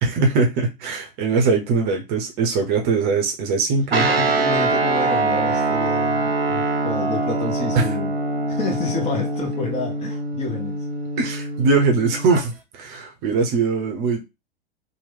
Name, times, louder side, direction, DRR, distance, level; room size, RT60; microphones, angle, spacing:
voice 1, 0.0-4.1 7.7-7.9 11.2-14.2, right 4 dB, 35° right, 0.7 m, -21 dB
Guitar, 3.9-12.4, right 3 dB, 85° right, 0.6 m, -23 dB
voice 2, 4.0-8.2 8.5-10.8, left 4 dB, 20° left, 0.7 m, -29 dB
3.0 x 2.1 x 3.3 m
figure-of-eight pair, 95°, 29 cm